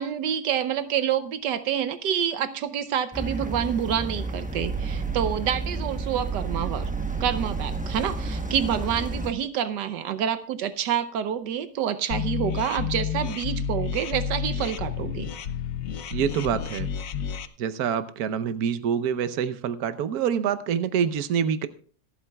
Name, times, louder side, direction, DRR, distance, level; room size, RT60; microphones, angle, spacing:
voice 1, 0.0-6.9 7.2-15.3, right 9 dB, 85° right, 11 dB, 1.4 m, -27 dB
sound 1, 3.1-9.3, right 3 dB, 10° right, 0.4 m, -30 dB
sound 2, 12.1-17.5, left 8 dB, 60° left, 1.0 m, -30 dB
voice 2, 16.1-16.9 17.6-21.7, right 8 dB, 65° right, 11 dB, 1.3 m, -26 dB
26.0 x 8.7 x 2.3 m, 0.42 s
omnidirectional pair, 1.8 m